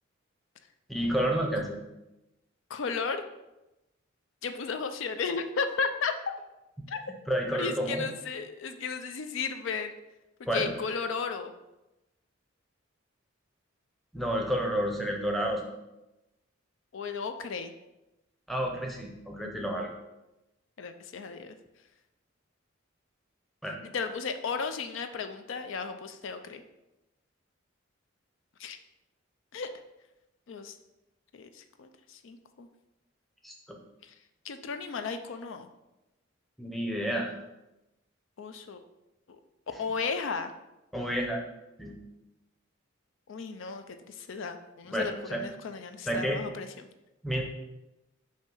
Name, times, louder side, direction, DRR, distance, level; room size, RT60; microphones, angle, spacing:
voice 1, 0.9-1.8 7.3-8.1 10.5-10.7 14.1-15.6 18.5-19.9 23.6-23.7 33.4-33.5 36.6-37.3 40.9-41.4 41.8-42.0 44.9-45.4 46.1-46.4 47.2-47.4, equal, ahead, 0 dB, 0.7 m, -30 dB
voice 2, 2.7-3.2 4.4-6.3 6.9-7.0 7.6-9.9 10.4-11.5 16.9-17.7 20.8-21.6 23.8-26.6 28.6-28.8 29.5-29.7 30.5-30.8 31.3-32.7 34.0-34.1 34.4-35.7 38.4-38.8 39.8-40.5 43.3-46.9, left 5 dB, 70° left, 8 dB, 0.4 m, -34 dB
6.4 x 2.7 x 5.4 m, 0.96 s
head